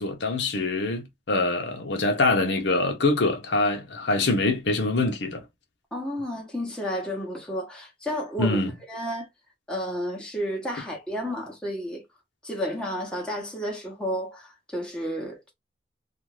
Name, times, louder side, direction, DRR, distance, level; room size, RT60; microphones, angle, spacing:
voice 1, 0.0-5.4 8.4-8.7, left 2 dB, 85° left, 0.8 m, -24 dB
voice 2, 5.9-8.6 8.9-9.3 9.7-12.0 12.4-15.5, equal, 5° left, 1.0 m, -31 dB
2.5 x 2.3 x 3.1 m
head